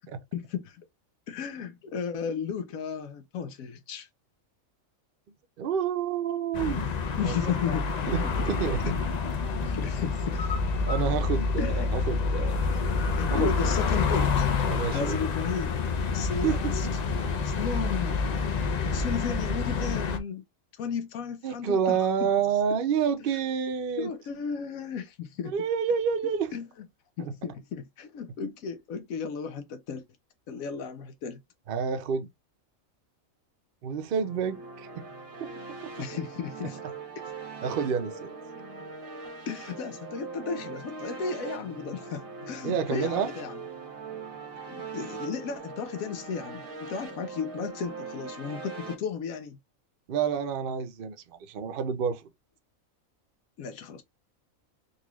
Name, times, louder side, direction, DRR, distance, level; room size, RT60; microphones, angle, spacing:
voice 1, 0.3-0.8 1.3-4.1 7.2-8.3 8.8-9.0 9.5-10.5 11.6-11.9 13.2-14.5 14.9-15.9 16.1-16.9 17.4-18.5 18.9-20.4 20.8-22.1 23.2-23.3 24.0-25.5 26.5-26.7 27.2-30.0 30.5-31.4 36.0-36.8 39.5-43.6 44.7-49.6 53.6-54.0, left 6 dB, 85° left, 1.1 m, -34 dB
voice 2, 5.6-6.9 7.2-7.4 8.1-9.0 10.9-12.6 13.3-13.5 14.7-15.2 16.4-16.6 16.8-16.9 21.4-24.1 25.5-26.5 27.2-27.3 31.7-32.3 33.8-35.0 35.4-35.5 35.8-35.9 37.6-38.3 42.6-43.3 50.1-51.2 51.5-52.2, right 7 dB, 55° right, 0.6 m, -28 dB
sound 1, 6.5-20.2, left 4 dB, 50° left, 0.5 m, -28 dB
sound 2, 34.2-48.9, right 4 dB, 80° right, 1.7 m, -41 dB
4.0 x 2.3 x 3.0 m
omnidirectional pair, 1.4 m